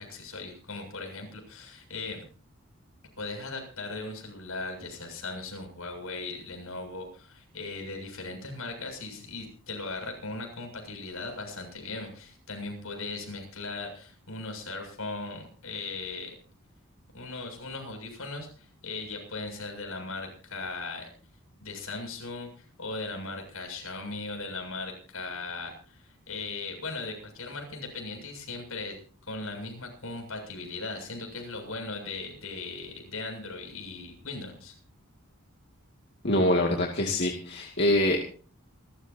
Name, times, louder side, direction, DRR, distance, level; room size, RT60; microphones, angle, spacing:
voice 1, 0.0-2.3 3.2-16.4 17.1-21.1 21.6-29.0 29.2-34.7, left 3 dB, 75° left, 3 dB, 7.3 m, -38 dB
voice 2, 36.2-38.2, left 1 dB, 50° left, 0 dB, 2.4 m, -24 dB
28.5 x 13.5 x 2.9 m, 0.42 s
head